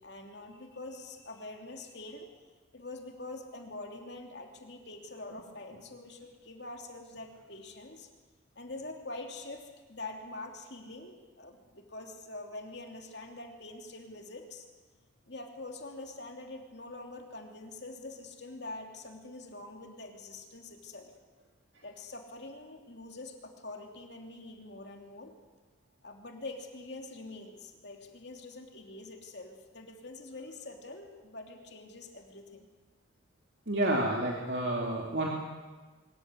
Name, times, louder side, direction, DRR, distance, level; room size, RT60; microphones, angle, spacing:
voice 1, 0.0-2.3 2.7-8.1 8.5-14.7 15.3-21.1 21.8-25.3 26.0-32.6, left 2 dB, 55° left, 2 dB, 3.0 m, -45 dB
voice 2, 33.7-35.3, right 1 dB, 55° right, -2 dB, 3.0 m, -29 dB
24.5 x 15.0 x 9.7 m, 1.3 s
head